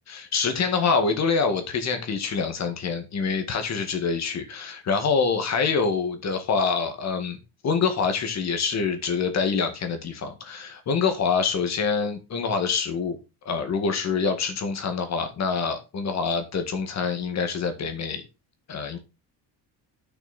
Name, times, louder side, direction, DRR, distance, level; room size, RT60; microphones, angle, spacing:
voice 1, 0.1-7.4 7.6-13.2 13.5-18.2 18.7-19.0, left 5 dB, 40° left, 1.9 m, -26 dB
10.5 x 6.4 x 4.2 m
cardioid pair, 170°, 42 cm